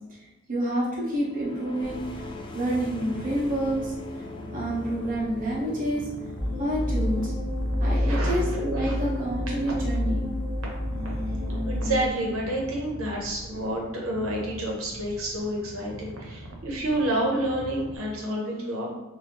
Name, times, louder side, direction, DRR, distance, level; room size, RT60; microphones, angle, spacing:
voice 1, 0.5-2.0 2.5-3.9 4.5-6.0 6.6-7.3 7.8-10.3, right 1 dB, 40° right, -6 dB, 1.0 m, -28 dB
sound 1, 1.1-12.7, left 3 dB, 25° left, 0.3 m, -44 dB
Purr, 1.8-18.0, right 1 dB, 65° right, 0.4 m, -42 dB
sound 2, 6.4-12.1, left 1 dB, ahead, 1.0 m, -28 dB
voice 2, 8.0-8.9 9.7-9.8 11.0-11.2 11.5-18.9, right 1 dB, 85° right, -2 dB, 0.9 m, -29 dB
2.7 x 2.6 x 2.9 m, 1.1 s
head